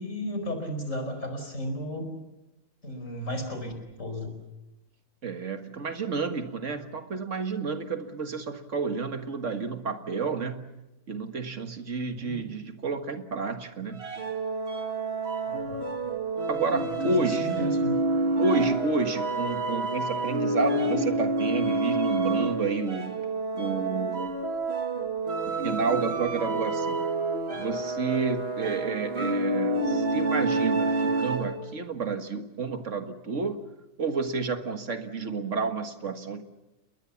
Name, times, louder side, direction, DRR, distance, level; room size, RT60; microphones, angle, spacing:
voice 1, 0.0-2.1 2.8-3.7 4.0-4.3 12.1-12.5 15.5-15.9 16.7-17.9 19.5-19.6, equal, 75° left, 6 dB, 5.1 m, -34 dB
voice 2, 5.2-10.7 11.1-14.1 16.5-17.5 18.3-23.2 23.5-24.4 25.4-27.1 27.6-33.6 34.0-36.4, right 4 dB, 70° right, 7 dB, 2.0 m, -30 dB
sound 1, 14.0-31.7, right 2 dB, 50° right, 2.2 m, -28 dB
28.5 x 21.5 x 7.2 m, 0.97 s
omnidirectional pair, 1.3 m